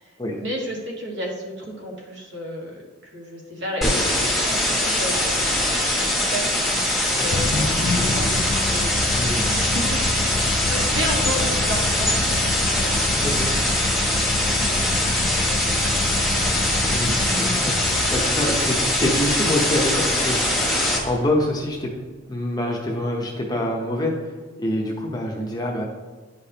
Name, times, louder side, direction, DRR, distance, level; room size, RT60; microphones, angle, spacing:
voice 1, 0.0-5.6 5.9-13.0 14.4-16.0, equal, 55° right, -2 dB, 1.6 m, -33 dB
sound 1, 3.8-21.0, left 1 dB, ahead, 1.2 m, -22 dB
sound 2, 7.3-21.8, left 2 dB, 40° left, 0.4 m, -28 dB
voice 2, 9.1-9.5 13.2-13.5 16.9-20.8 21.0-21.9 22.3-24.3 24.6-25.8, left 1 dB, 20° left, 0 dB, 0.8 m, -26 dB
10.0 x 5.1 x 2.8 m, 1.3 s
head